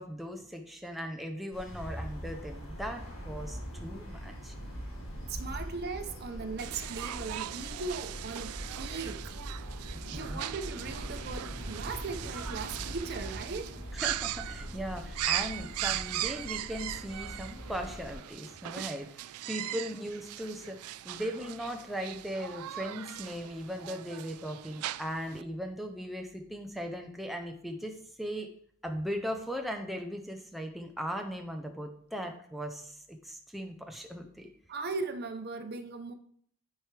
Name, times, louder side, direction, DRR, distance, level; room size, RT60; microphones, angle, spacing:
voice 1, 0.0-4.5 9.9-10.6 13.9-28.5 28.8-34.5, equal, ahead, 0.5 m, -38 dB
sound 1, 1.5-18.1, equal, 65° left, 2.1 m, -42 dB
voice 2, 5.3-9.4 10.1-13.8 34.7-36.1, right 4 dB, 45° right, 0.6 m, -38 dB
sound 2, 6.6-25.4, right 13 dB, 90° right, 0.3 m, -39 dB
9.9 x 4.5 x 3.3 m
head